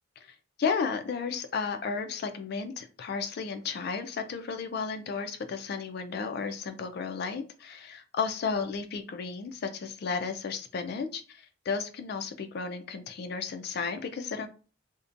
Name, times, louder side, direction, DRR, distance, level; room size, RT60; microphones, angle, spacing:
voice 1, 0.2-14.5, left 5 dB, 50° left, 7 dB, 0.3 m, -33 dB
2.6 x 2.1 x 2.5 m, 0.36 s
head